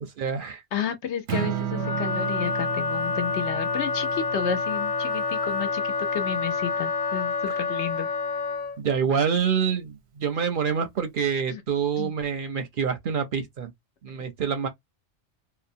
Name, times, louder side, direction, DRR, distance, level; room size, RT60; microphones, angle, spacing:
voice 1, 0.0-0.6 8.8-13.7 14.0-14.7, right 7 dB, 60° right, 0.6 m, -26 dB
voice 2, 0.7-8.1 11.5-11.6 12.0-12.1, left 8 dB, 75° left, 1.0 m, -32 dB
Strum, 1.3-7.5, right 9 dB, 85° right, 0.9 m, -35 dB
Wind instrument woodwind instrument, 1.7-8.8, left 4 dB, 50° left, 0.7 m, -28 dB
2.7 x 2.1 x 2.5 m
omnidirectional pair, 1.2 m